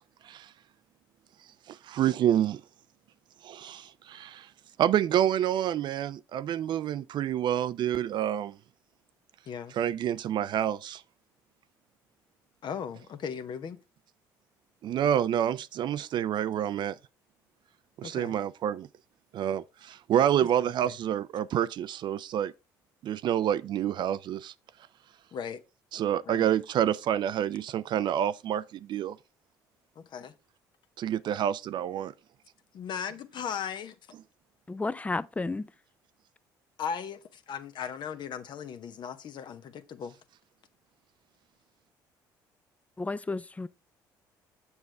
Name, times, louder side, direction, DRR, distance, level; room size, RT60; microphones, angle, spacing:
voice 1, 1.7-2.6 3.4-4.5 4.8-8.6 9.7-11.0 14.8-17.0 18.0-18.9 19.3-22.5 23.0-24.5 25.9-29.2 31.0-32.1, right 10 dB, 55° right, 0.4 m, -28 dB
voice 2, 12.6-13.8 18.0-18.3 20.8-21.0 25.3-25.6 26.2-26.5 30.0-30.3 32.7-34.0 36.8-40.2, left 7 dB, 55° left, 0.9 m, -37 dB
voice 3, 34.7-35.7 43.0-43.7, left 3 dB, 15° left, 0.4 m, -32 dB
7.2 x 6.3 x 3.3 m
supercardioid pair, 70°, 9 cm